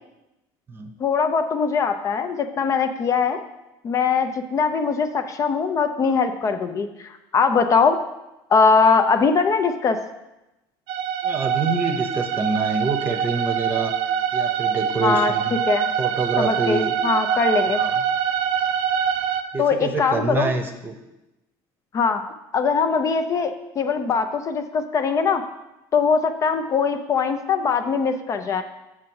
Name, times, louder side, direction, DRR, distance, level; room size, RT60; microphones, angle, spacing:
voice 1, 1.0-3.4 3.8-8.0 8.5-10.0 15.0-15.3 15.7-15.9 16.4-17.8 19.6-20.5 21.9-22.2 22.5-25.4 25.9-28.6, left 5 dB, 30° left, 7 dB, 0.5 m, -21 dB
sound 1, 10.9-19.4, right 8 dB, 65° right, 0.6 m, -24 dB
voice 2, 11.2-13.9 14.3-15.6 16.0-16.9 17.7-18.0 19.5-20.9, right 4 dB, 20° right, 6 dB, 0.8 m, -26 dB
7.3 x 6.1 x 4.7 m, 0.96 s
cardioid pair, 135°, 10 cm